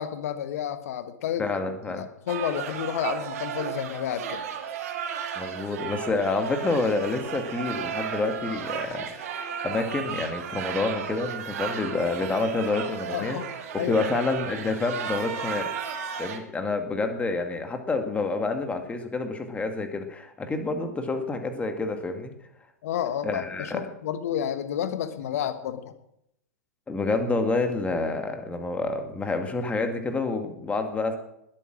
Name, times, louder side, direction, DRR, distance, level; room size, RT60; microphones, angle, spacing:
voice 1, 0.0-1.5 1.9-4.4 13.1-13.5 13.8-14.1 22.8-25.9, left 9 dB, 60° left, 11 dB, 1.5 m, -30 dB
voice 2, 1.4-2.0 5.4-13.4 13.7-15.7 16.2-22.3 23.2-23.8 26.9-31.1, left 3 dB, 15° left, 6 dB, 2.1 m, -28 dB
sound 1, 2.3-16.4, right 8 dB, 60° right, 2.4 m, -34 dB
20.0 x 8.7 x 6.2 m, 0.79 s
figure-of-eight pair, 100°, 9 cm